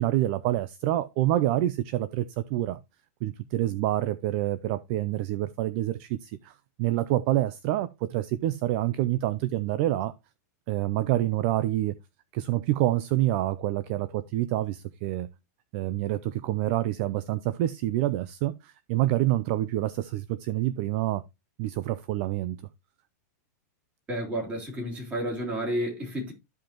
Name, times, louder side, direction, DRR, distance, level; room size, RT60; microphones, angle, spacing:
voice 1, 0.0-2.8 3.2-6.5 6.8-10.1 10.7-12.0 12.3-15.3 15.7-21.2 21.6-22.6, right 14 dB, 40° right, 0.5 m, -27 dB
voice 2, 24.1-26.3, equal, 15° right, 3.2 m, -31 dB
13.5 x 5.1 x 2.9 m
supercardioid pair, 160°, 9 cm